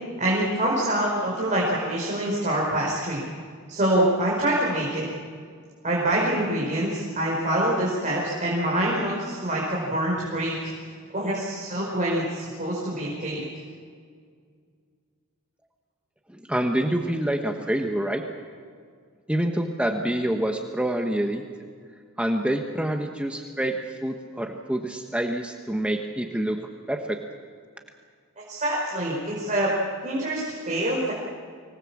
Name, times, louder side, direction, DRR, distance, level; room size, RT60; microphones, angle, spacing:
voice 1, 0.2-3.2 3.7-5.1 5.8-10.7 11.1-13.4 28.5-29.7 30.0-31.1, right 1 dB, 35° right, -4 dB, 5.0 m, -25 dB
voice 2, 16.3-18.2 19.3-21.4 22.2-26.6 26.9-27.2, right 1 dB, 5° right, 3 dB, 1.1 m, -27 dB
25.0 x 19.5 x 7.3 m, 2.1 s
head